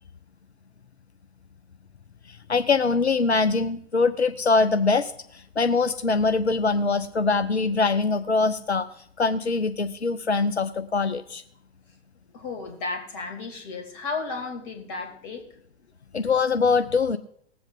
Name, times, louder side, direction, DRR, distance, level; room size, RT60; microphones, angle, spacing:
voice 1, 2.3-8.9 9.2-11.4 16.1-17.2, left 4 dB, 90° left, 11 dB, 0.6 m, -23 dB
voice 2, 12.3-15.5, left 4 dB, 40° left, 5 dB, 2.5 m, -33 dB
18.5 x 7.8 x 3.8 m, 0.69 s
figure-of-eight pair, 105°, 32 cm